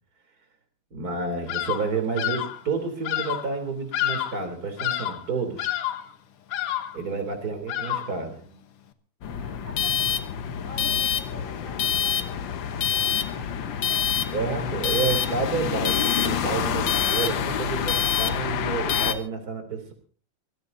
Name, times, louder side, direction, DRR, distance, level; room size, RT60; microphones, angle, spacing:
voice 1, 0.9-5.7 6.9-8.4 14.3-19.9, right 5 dB, 40° right, 6 dB, 3.8 m, -30 dB
Bird vocalization bird call bird song, 1.5-2.6 3.0-3.5 3.9-4.5 4.8-5.3 5.6-6.1 6.5-7.0 7.7-8.2, left 12 dB, 80° left, 2.1 m, -29 dB
voice 2, 7.4-7.7 8.1-8.6 9.3-14.2 14.6-14.7, left 1 dB, 35° left, 3 dB, 7.6 m, -46 dB
sound 1, 9.2-19.1, left 8 dB, 65° left, 1.7 m, -26 dB
24.5 x 16.5 x 2.7 m, 0.43 s
omnidirectional pair, 2.4 m